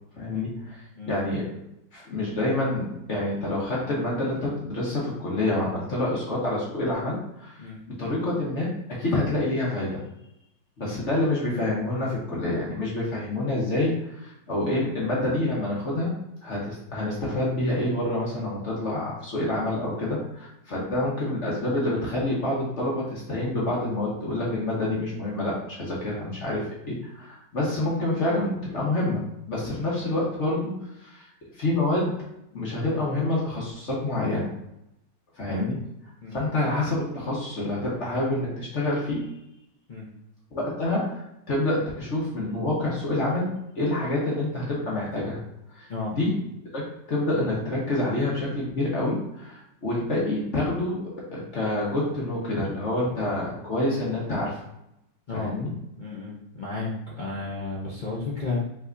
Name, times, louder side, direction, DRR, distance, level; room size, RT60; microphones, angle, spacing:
voice 1, 0.2-1.6 1.9-7.6 7.9-10.0 10.8-16.1 16.4-31.3 31.5-32.2 32.5-34.5 35.4-35.8 36.3-39.3 40.5-45.4 45.7-45.9 46.2-46.4 46.7-46.8 47.1-54.6 55.3-55.7, left 2 dB, 45° left, -5 dB, 1.2 m, -27 dB
voice 2, 55.3-55.6 56.0-56.9 57.2-58.6, left 3 dB, 75° left, -5 dB, 0.4 m, -33 dB
5.6 x 3.4 x 2.6 m, 0.83 s
omnidirectional pair, 2.0 m